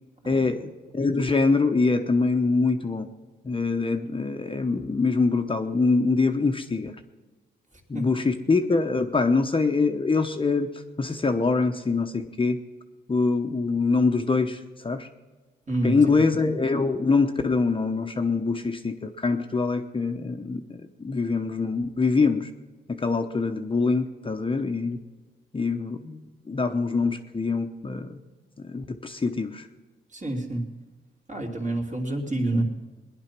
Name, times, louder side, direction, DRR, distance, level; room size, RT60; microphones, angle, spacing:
voice 1, 0.3-3.1 3.4-6.9 7.9-10.7 11.0-12.6 13.1-15.1 15.8-22.5 22.9-25.0 25.5-28.2 28.6-29.7, left 4 dB, 25° left, 6 dB, 0.9 m, -24 dB
voice 2, 30.1-30.6 31.3-32.6, right 1 dB, 35° right, 1 dB, 2.9 m, -28 dB
19.5 x 10.5 x 6.0 m, 1.3 s
cardioid pair, 90°, 20 cm